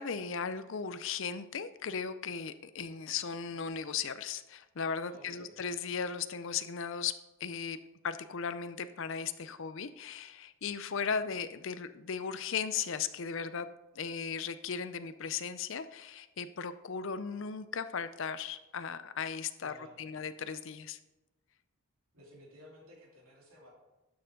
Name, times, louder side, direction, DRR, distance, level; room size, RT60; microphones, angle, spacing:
voice 1, 0.0-7.1 7.4-7.8 8.0-21.0, left 6 dB, 55° left, 12 dB, 0.5 m, -37 dB
voice 2, 5.1-5.5 19.6-20.1 22.1-23.7, equal, 70° right, -3 dB, 2.9 m, -55 dB
12.0 x 6.8 x 3.8 m, 1.0 s
head